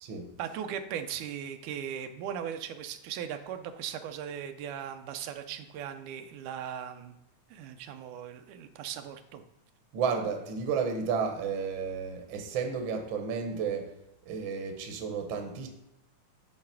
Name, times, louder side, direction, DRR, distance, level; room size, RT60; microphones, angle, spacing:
voice 1, 0.4-7.2 7.5-9.4, right 9 dB, 90° right, 7 dB, 2.2 m, -38 dB
voice 2, 9.9-13.9 14.3-15.7, right 6 dB, 55° right, 4 dB, 1.5 m, -32 dB
8.8 x 4.1 x 5.8 m, 0.87 s
omnidirectional pair, 3.5 m